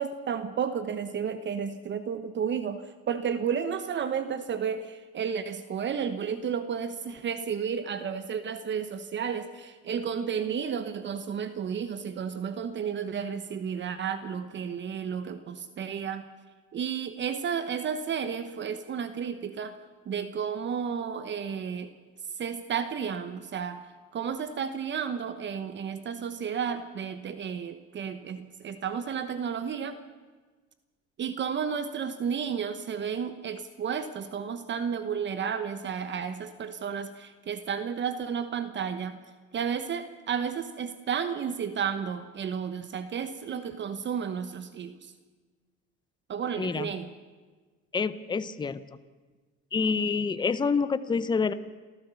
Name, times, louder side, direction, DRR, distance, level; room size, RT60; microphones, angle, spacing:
voice 1, 0.0-16.2 16.7-19.8 20.1-21.9 22.4-23.8 24.1-30.0 31.2-39.2 39.5-45.1 46.3-47.1, right 7 dB, 40° right, 11 dB, 1.1 m, -32 dB
voice 2, 46.6-46.9 47.9-48.8 49.7-51.5, left 5 dB, 15° left, 14 dB, 0.7 m, -27 dB
27.5 x 14.5 x 7.0 m, 1.4 s
supercardioid pair, 100°, 29 cm